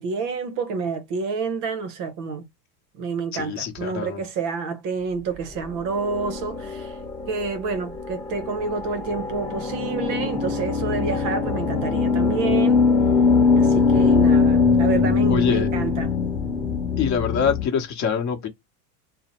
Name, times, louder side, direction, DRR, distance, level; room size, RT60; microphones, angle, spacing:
voice 1, 0.0-2.5 3.0-7.0 7.3-12.9 13.5-16.1, right 4 dB, 40° right, 0.6 m, -29 dB
voice 2, 3.3-4.2 15.3-15.7 17.0-18.5, left 7 dB, 35° left, 0.9 m, -25 dB
sound 1, 5.8-17.6, left 4 dB, 10° left, 1.0 m, -22 dB
2.7 x 2.0 x 2.9 m
supercardioid pair, 125°, 48 cm